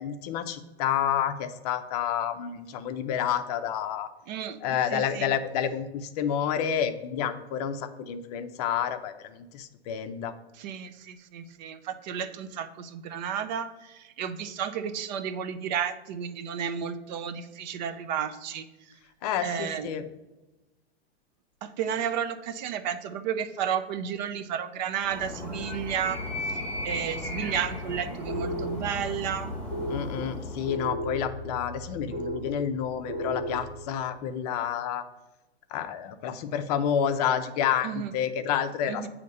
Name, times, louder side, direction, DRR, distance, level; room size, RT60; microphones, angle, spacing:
voice 1, 0.0-4.1 4.6-10.3 19.2-20.1 29.9-35.0 35.7-39.1, left 8 dB, 40° left, 9 dB, 0.5 m, -29 dB
voice 2, 4.3-4.6 4.9-5.3 10.6-18.6 19.4-19.9 21.6-26.2 26.5-26.6 26.8-29.6 37.8-38.1 38.9-39.1, right 8 dB, 45° right, 10 dB, 0.5 m, -32 dB
Animal, 25.0-30.9, left 2 dB, 5° left, 1.0 m, -36 dB
sound 1, 28.3-34.0, equal, 85° right, 1.4 m, -36 dB
8.0 x 2.8 x 5.3 m, 1.1 s
hypercardioid pair, 135°, 33 cm